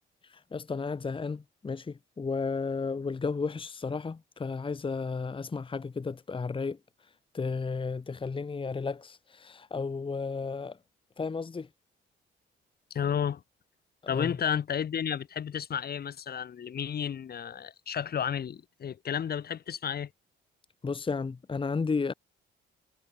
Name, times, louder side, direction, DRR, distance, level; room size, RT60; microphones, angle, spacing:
voice 1, 0.5-6.8 7.3-10.8 11.2-11.7 14.1-14.3 20.8-22.1, left 4 dB, 25° left, 1.2 m, -33 dB
voice 2, 12.9-13.4 14.1-20.1, left 8 dB, 50° left, 1.7 m, -32 dB
cardioid pair, 90°, 20 cm